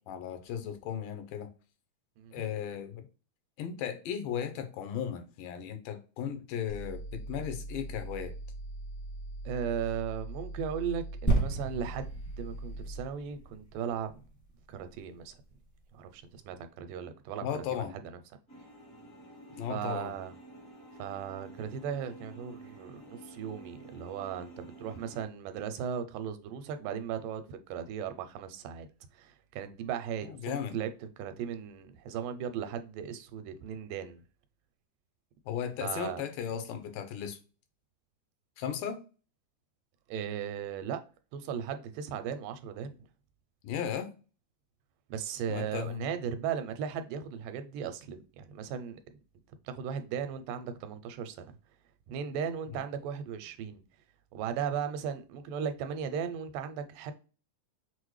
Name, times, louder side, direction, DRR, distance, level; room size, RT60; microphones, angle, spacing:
voice 1, 0.0-1.5 2.3-3.1 3.6-8.3 17.4-17.9 19.6-20.1 30.2-30.8 35.5-37.4 38.6-39.0 43.6-44.1 45.5-46.0 52.7-52.8, left 8 dB, 80° left, 2.3 m, -36 dB
sound 1, 6.7-13.1, right 2 dB, 60° left, 1.7 m, -41 dB
voice 2, 9.5-12.1 12.4-14.2 14.7-15.4 15.9-17.4 17.7-18.2 19.7-20.3 21.0-28.9 29.2-34.2 35.8-36.2 40.1-41.0 41.3-43.0 45.1-49.2 49.7-51.5 52.1-53.8 54.3-57.1, right 8 dB, 85° right, 2.2 m, -37 dB
sound 2, 11.3-14.9 15.5-15.6, right 2 dB, 15° left, 0.5 m, -33 dB
sound 3, 18.5-25.2, right 1 dB, 45° left, 0.9 m, -50 dB
6.0 x 2.1 x 3.1 m
omnidirectional pair, 3.7 m